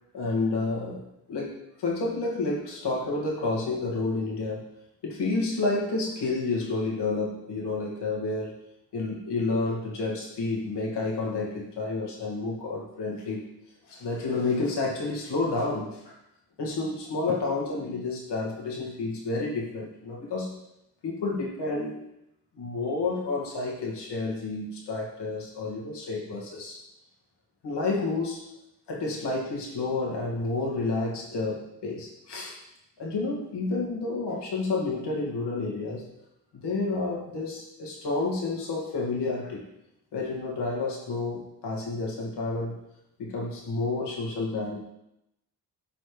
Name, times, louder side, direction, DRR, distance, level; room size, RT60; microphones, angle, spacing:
voice 1, 0.1-1.0 1.3-4.7 5.0-8.5 8.9-13.5 13.9-16.2 16.6-20.5 21.0-21.9 22.5-26.8 27.6-28.5 28.9-32.6 33.0-36.1 36.5-39.6 40.1-42.8 43.2-44.8, left 3 dB, 90° left, -2 dB, 2.1 m, -30 dB
12.0 x 4.4 x 3.3 m, 0.84 s
cardioid pair, 85°, 40 cm